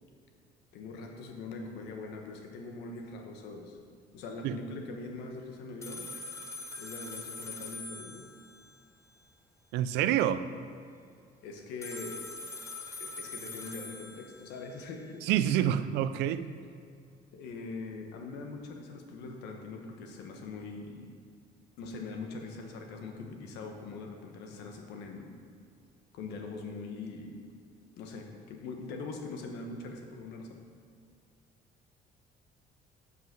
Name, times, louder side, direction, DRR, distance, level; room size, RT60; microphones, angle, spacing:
voice 1, 0.7-3.8 4.1-6.1 6.8-8.2 11.4-12.2 13.0-15.2 17.3-21.1 21.8-25.3 26.1-27.4 28.0-30.6, left 3 dB, 90° left, 3 dB, 1.1 m, -42 dB
sound 1, 5.8-8.7 11.8-14.7, left 3 dB, 15° left, 0.9 m, -43 dB
voice 2, 9.7-10.4 15.2-16.5, right 11 dB, 90° right, 12 dB, 0.4 m, -27 dB
7.5 x 5.6 x 5.9 m, 2.3 s
cardioid pair, 110°, 17 cm